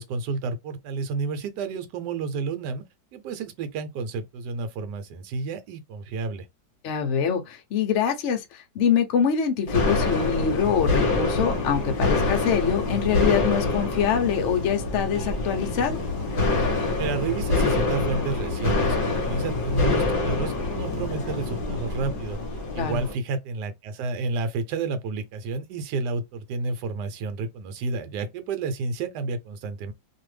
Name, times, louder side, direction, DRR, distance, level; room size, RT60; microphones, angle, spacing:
voice 1, 0.0-2.8 3.1-6.5 17.0-22.4 22.7-29.9, right 4 dB, 70° right, 1.2 m, -30 dB
voice 2, 6.8-16.0 22.8-23.0, left 7 dB, 70° left, 0.7 m, -24 dB
sound 1, 9.7-23.1, left 3 dB, 40° left, 0.8 m, -26 dB
2.7 x 2.4 x 3.2 m
omnidirectional pair, 2.0 m